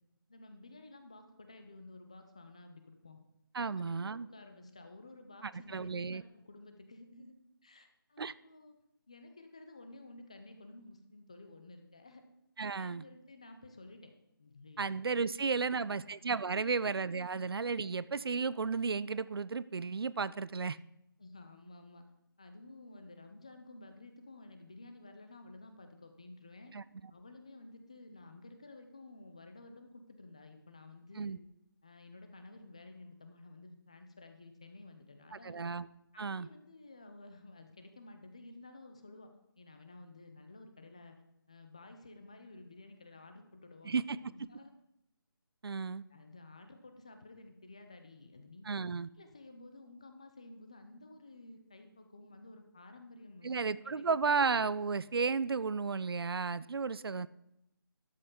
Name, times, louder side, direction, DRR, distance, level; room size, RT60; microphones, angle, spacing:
voice 1, 0.3-3.2 3.5-7.3 7.6-8.8 9.1-12.2 12.7-14.1 14.4-14.8 15.2-16.0 16.4-16.9 21.2-22.0 22.4-26.7 27.1-31.4 31.8-35.6 36.1-41.2 41.5-44.7 45.8-48.6 49.2-54.1, left 2 dB, 15° left, 6 dB, 0.5 m, -53 dB
voice 2, 3.5-4.3 5.4-6.2 8.2-8.3 12.6-13.0 14.8-20.8 26.7-26.8 31.2-31.4 35.4-35.9 36.2-36.5 43.8-44.2 45.6-46.0 48.7-49.1 53.4-57.3, right 5 dB, 85° right, 18 dB, 0.5 m, -33 dB
12.0 x 7.9 x 3.7 m, 0.83 s
figure-of-eight pair, 175°, 12 cm